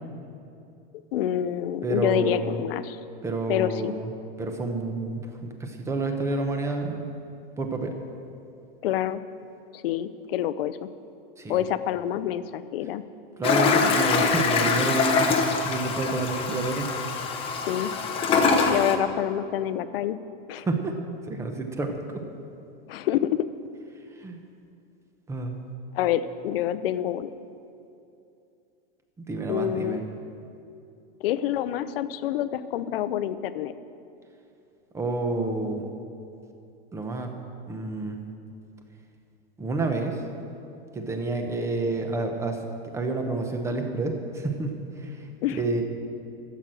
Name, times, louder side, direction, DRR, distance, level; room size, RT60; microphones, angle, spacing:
voice 1, 1.1-3.0 3.5-3.9 8.8-9.2 9.7-10.8 11.5-13.0 17.5-17.9 18.7-20.2 20.5-20.7 22.9-23.5 25.9-27.3 29.5-30.0 31.2-33.7 45.4-45.6, left 11 dB, 70° left, 13 dB, 0.7 m, -27 dB
voice 2, 1.8-2.6 3.2-4.1 4.4-7.1 7.6-7.9 11.4-11.6 13.4-15.3 15.6-16.9 20.6-20.9 21.3-22.2 24.2-24.4 25.3-25.5 29.2-30.0 34.9-35.9 36.9-37.3 37.7-38.2 39.6-40.2 40.9-42.6 42.9-45.8, right 3 dB, 10° right, 5 dB, 0.9 m, -29 dB
Toilet flush, 13.4-18.9, left 5 dB, 20° left, 0.8 m, -24 dB
13.0 x 8.1 x 7.6 m, 2.7 s
supercardioid pair, 160°, 30 cm